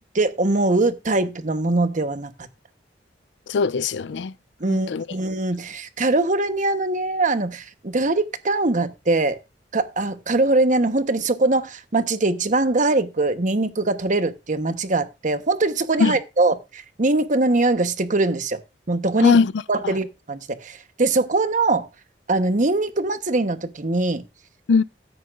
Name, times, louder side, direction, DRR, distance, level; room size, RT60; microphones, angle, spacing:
voice 1, 0.1-2.3 4.6-9.4 9.7-18.6 18.9-19.4 19.7-21.9 22.3-24.2, right 2 dB, 45° right, 1.0 m, -22 dB
voice 2, 3.5-4.3 4.7-5.1 16.0-16.2 19.2-19.5 19.8-20.0 24.7-24.8, left 4 dB, 80° left, 0.4 m, -20 dB
14.0 x 9.4 x 2.5 m
head